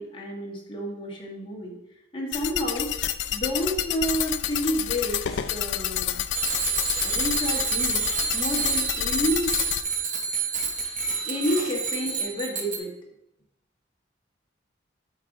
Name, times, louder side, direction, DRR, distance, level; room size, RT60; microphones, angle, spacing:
voice 1, 0.0-1.8 2.1-2.9 3.3-5.2 5.5-6.2 7.0-8.0 8.3-9.5 11.2-12.9, equal, 30° left, -2 dB, 1.6 m, -30 dB
sound 1, 2.3-9.8, left 11 dB, 75° left, 0.4 m, -29 dB
sound 2, 4.9-6.2 6.6-6.7 7.3-7.4 7.8-8.1 8.5-9.6 9.9-10.2 10.5-11.8, left 1 dB, 5° right, 2.5 m, -47 dB
Bicycle bell, 6.3-12.8, right 5 dB, 45° right, 0.9 m, -28 dB
8.1 x 4.8 x 3.9 m, 0.84 s
head